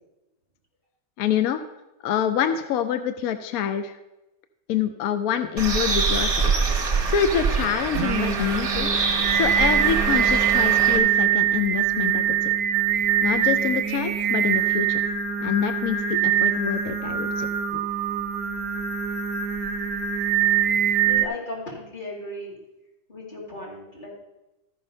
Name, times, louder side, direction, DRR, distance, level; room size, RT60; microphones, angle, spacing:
voice 1, 1.2-1.6 2.0-4.0 4.7-6.5 7.1-8.9 9.3-12.5 13.2-15.0 15.4-17.5 17.7-17.8, left 8 dB, 70° left, 10 dB, 0.8 m, -26 dB
Bird, 5.6-11.0, right 4 dB, 25° right, 0.9 m, -25 dB
Singing, 7.9-21.3, right 9 dB, 65° right, 1.0 m, -23 dB
voice 2, 21.0-22.6 23.1-24.1, left 1 dB, 25° left, -5 dB, 2.9 m, -36 dB
13.5 x 5.5 x 5.4 m, 0.99 s
omnidirectional pair, 1.9 m